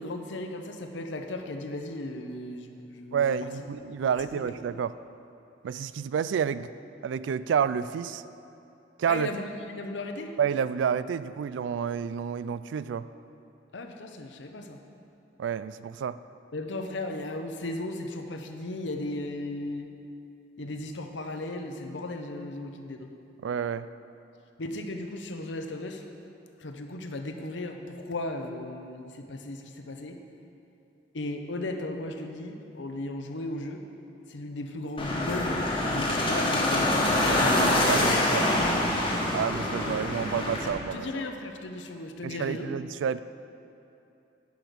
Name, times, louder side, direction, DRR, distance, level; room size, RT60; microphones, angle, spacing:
voice 1, 0.0-3.3 3.8-4.4 9.1-10.3 13.7-14.8 16.5-19.9 20.6-23.1 24.6-26.0 26.6-30.2 31.1-33.8 34.3-35.6 35.9-37.1 40.9-42.8, left 2 dB, 80° left, 5 dB, 0.8 m, -36 dB
voice 2, 3.1-4.9 5.6-6.7 7.0-8.2 9.0-9.3 10.4-13.1 15.4-16.2 23.4-23.9 37.3-38.5 39.3-41.1 42.2-43.2, right 7 dB, 90° right, 15 dB, 0.3 m, -29 dB
sound 1, 35.0-40.7, left 1 dB, 30° left, 1.3 m, -25 dB
10.5 x 6.3 x 5.2 m, 2.8 s
head